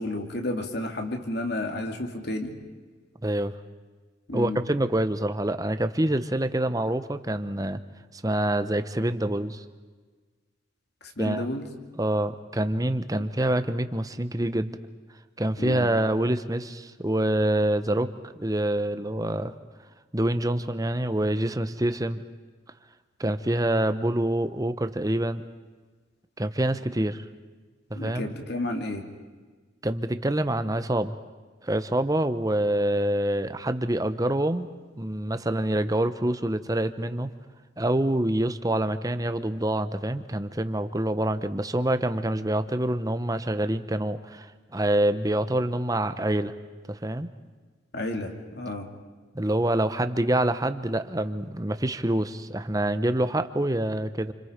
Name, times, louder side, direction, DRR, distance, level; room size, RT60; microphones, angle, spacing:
voice 1, 0.0-2.5 4.3-4.6 11.0-11.6 13.1-13.3 15.6-15.8 27.9-29.0 47.9-48.9, left 1 dB, 55° left, 4 dB, 2.8 m, -31 dB
voice 2, 3.2-3.5 4.3-7.8 8.1-9.6 11.2-11.4 12.0-14.8 15.4-18.1 18.4-19.5 20.1-22.2 23.2-25.4 26.4-27.2 27.9-28.3 29.8-31.2 31.6-34.7 35.0-37.3 37.8-46.5 46.9-47.3 49.3-54.3, right 1 dB, 20° right, 10 dB, 0.9 m, -26 dB
29.0 x 27.5 x 5.2 m, 1.4 s
head